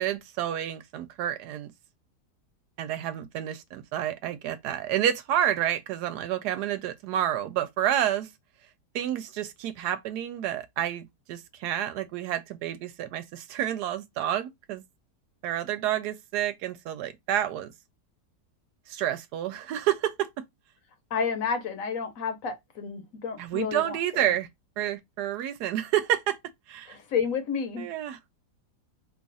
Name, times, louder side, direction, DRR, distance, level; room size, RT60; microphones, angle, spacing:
voice 1, 0.0-1.7 2.8-8.3 8.9-14.8 15.4-17.7 18.9-20.3 23.4-24.5 24.8-26.4 26.7-27.0 27.8-28.2, right 11 dB, 80° right, 1.1 m, -29 dB
voice 2, 21.1-24.4 26.9-27.9, left 6 dB, 60° left, 1.1 m, -31 dB
3.0 x 2.4 x 3.9 m
omnidirectional pair, 1.8 m